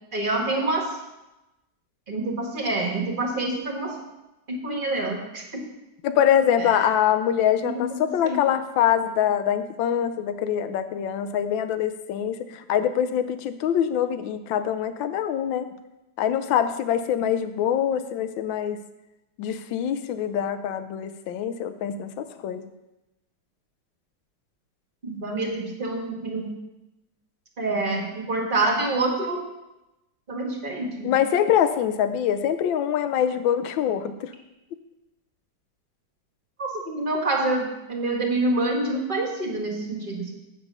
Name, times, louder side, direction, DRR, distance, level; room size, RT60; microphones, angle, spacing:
voice 1, 0.1-1.0 2.1-4.0 4.5-5.6 7.6-8.4 25.0-26.5 27.6-29.4 30.3-31.1 36.6-40.3, right 2 dB, 30° right, 1 dB, 1.5 m, -27 dB
voice 2, 6.0-15.7 16.2-18.8 19.4-22.7 31.0-34.3, left 9 dB, 90° left, 11 dB, 1.4 m, -24 dB
8.0 x 7.9 x 5.5 m, 0.97 s
omnidirectional pair, 2.0 m